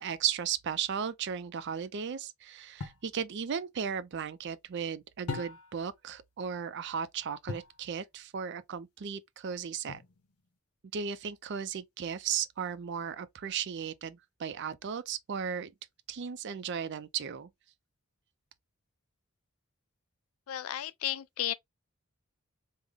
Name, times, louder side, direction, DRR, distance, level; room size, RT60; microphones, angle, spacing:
voice 1, 0.0-10.0 10.9-15.7 16.1-17.5, right 7 dB, 50° right, 0.4 m, -35 dB
sound 1, 2.8-3.1 5.3-5.9 7.5-7.8 9.9-10.4, left 3 dB, 85° left, 0.7 m, -40 dB
voice 2, 20.5-21.5, left 12 dB, 70° left, 0.4 m, -33 dB
3.6 x 2.1 x 3.3 m
head